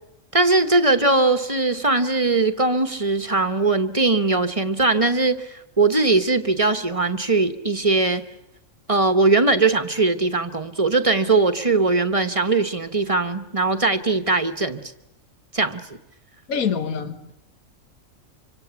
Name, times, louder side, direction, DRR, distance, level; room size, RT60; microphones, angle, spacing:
voice 1, 0.3-8.2 8.9-14.8 15.5-15.8, right 3 dB, 25° right, 9 dB, 1.1 m, -20 dB
voice 2, 16.5-17.3, left 6 dB, 80° left, 9 dB, 1.8 m, -25 dB
26.0 x 25.5 x 7.2 m, 0.84 s
omnidirectional pair, 1.4 m